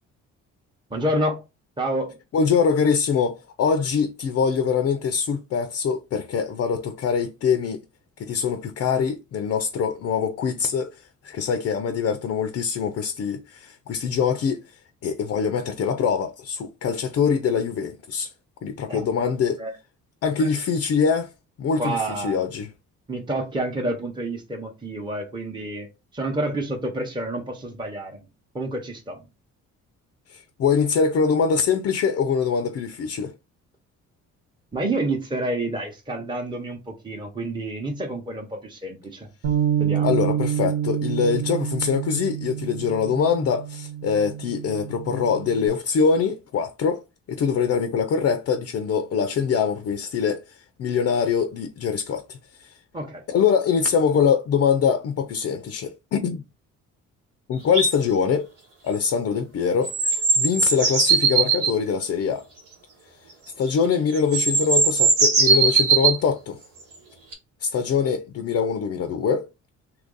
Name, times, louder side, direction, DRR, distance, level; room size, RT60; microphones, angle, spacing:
voice 1, 0.9-1.4 1.8-2.2 18.9-19.0 19.6-19.7 20.4-20.5 21.8-22.5 23.1-25.9 26.1-28.2 28.5-29.2 34.7-39.3 39.8-40.1 52.9-53.2, right 1 dB, 15° right, 0.8 m, -28 dB
voice 2, 2.3-7.8 8.2-11.0 11.2-14.6 15.0-18.3 18.6-19.6 20.2-21.3 21.6-22.7 30.3-33.3 40.0-47.0 47.3-50.4 50.8-52.7 53.3-56.4 57.5-58.5 58.8-62.5 63.6-66.6 67.6-69.5, left 6 dB, 50° left, 0.5 m, -23 dB
Bass guitar, 39.4-45.7, right 10 dB, 70° right, 1.2 m, -27 dB
sound 1, 57.7-57.9 59.8-61.7 63.7-63.8 64.2-66.2 67.3-67.4, right 4 dB, 90° right, 1.3 m, -19 dB
2.8 x 2.5 x 3.8 m
cardioid pair, 90°, 30 cm